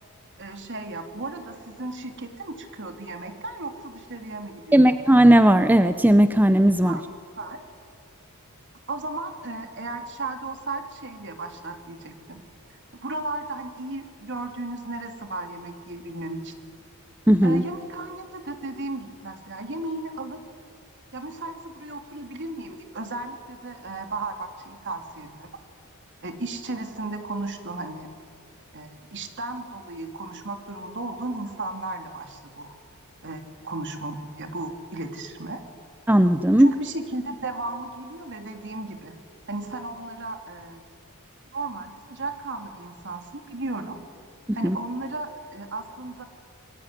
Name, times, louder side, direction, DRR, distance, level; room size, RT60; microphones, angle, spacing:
voice 1, 0.4-4.8 6.9-7.0 7.4-7.6 8.9-12.4 13.0-16.5 17.4-20.4 21.1-25.5 26.2-28.1 28.7-32.7 33.2-35.6 36.6-39.2 39.5-40.9 41.5-44.0 44.5-46.2, right 2 dB, 55° right, 5 dB, 3.2 m, -35 dB
voice 2, 4.7-7.0 17.3-17.6 36.1-36.7 44.6-44.8, right 1 dB, 10° right, 10 dB, 0.7 m, -16 dB
27.0 x 22.5 x 9.8 m, 2.4 s
head